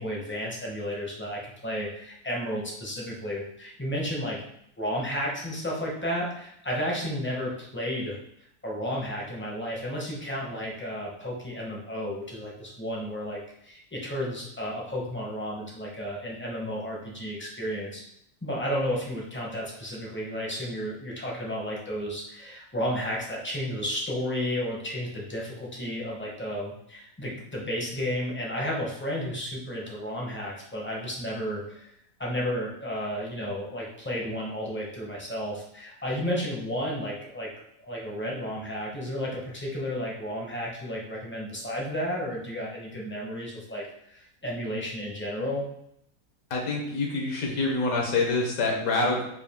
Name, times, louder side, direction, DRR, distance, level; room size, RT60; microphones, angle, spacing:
voice 1, 0.0-4.4 4.8-8.2 8.6-18.0 18.4-31.9 32.2-37.5 37.8-45.7, equal, 15° left, -3 dB, 0.5 m, -32 dB
voice 2, 46.5-49.2, left 3 dB, 70° left, 0 dB, 1.3 m, -26 dB
4.8 x 2.3 x 3.5 m, 0.73 s
omnidirectional pair, 1.6 m